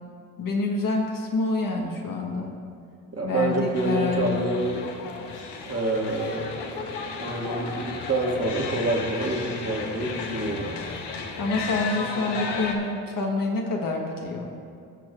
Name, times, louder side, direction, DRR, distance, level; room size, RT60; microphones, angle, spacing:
voice 1, 0.4-2.5 3.2-4.4 11.4-14.5, left 3 dB, 50° left, 0 dB, 1.3 m, -27 dB
voice 2, 3.1-4.9 5.7-10.7, right 2 dB, 35° right, -1 dB, 1.9 m, -27 dB
sound 1, 3.7-12.8, left 4 dB, 70° left, 1.1 m, -34 dB
17.5 x 6.0 x 2.5 m, 2.4 s
hypercardioid pair, 45°, 42 cm